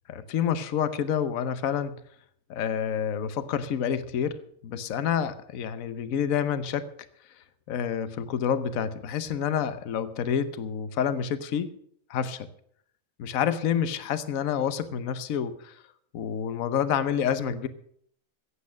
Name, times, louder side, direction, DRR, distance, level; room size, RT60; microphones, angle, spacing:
voice 1, 0.1-2.0 2.5-6.9 7.7-11.7 12.1-12.5 13.2-15.8 16.1-17.7, left 8 dB, 65° left, 13 dB, 1.2 m, -28 dB
14.5 x 8.5 x 6.4 m, 0.66 s
omnidirectional pair, 1.6 m